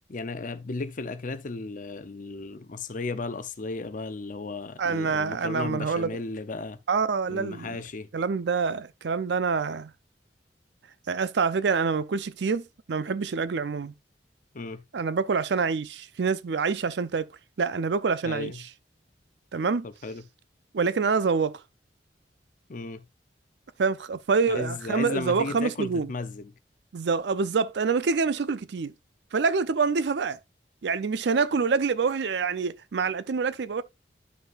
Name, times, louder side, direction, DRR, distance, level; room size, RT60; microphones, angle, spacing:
voice 1, 0.1-6.8 7.3-8.1 14.5-14.8 18.2-18.6 19.8-20.2 22.7-23.0 24.5-26.5, left 3 dB, 45° left, 0.6 m, -35 dB
voice 2, 4.8-6.1 6.9-7.8 8.1-9.9 11.1-13.9 14.9-17.3 17.6-18.5 19.5-19.9 20.7-21.6 23.8-26.1 26.9-28.9 29.3-30.4 30.8-33.8, right 5 dB, 70° right, 0.5 m, -26 dB
11.0 x 5.6 x 2.4 m
head